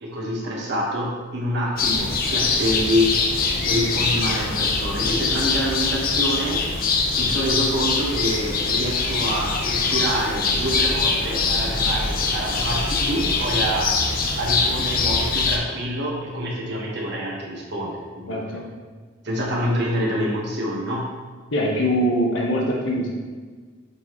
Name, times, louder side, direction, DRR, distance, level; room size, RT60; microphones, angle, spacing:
voice 1, 0.0-3.1 3.6-6.6 7.2-13.9 14.4-18.4 19.2-21.1, equal, 60° right, -3 dB, 1.4 m, -26 dB
sound 1, 1.8-15.6, left 4 dB, 45° left, 0.7 m, -23 dB
voice 2, 18.3-18.6 21.5-23.1, equal, 65° left, -3 dB, 1.1 m, -22 dB
8.0 x 4.1 x 3.1 m, 1.5 s
head